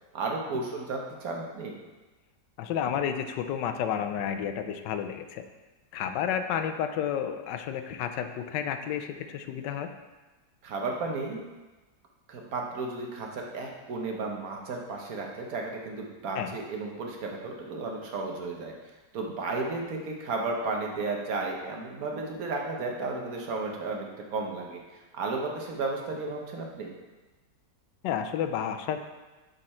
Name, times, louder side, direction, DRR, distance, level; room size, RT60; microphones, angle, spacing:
voice 1, 0.1-1.8 10.6-11.4 12.3-18.7 19.1-24.8 25.1-26.9, right 3 dB, 60° right, 1 dB, 1.3 m, -33 dB
voice 2, 2.6-5.4 5.9-9.9 16.4-16.6 28.0-29.0, left 8 dB, 80° left, 8 dB, 1.2 m, -31 dB
6.3 x 5.4 x 4.2 m, 1.2 s
omnidirectional pair, 1.9 m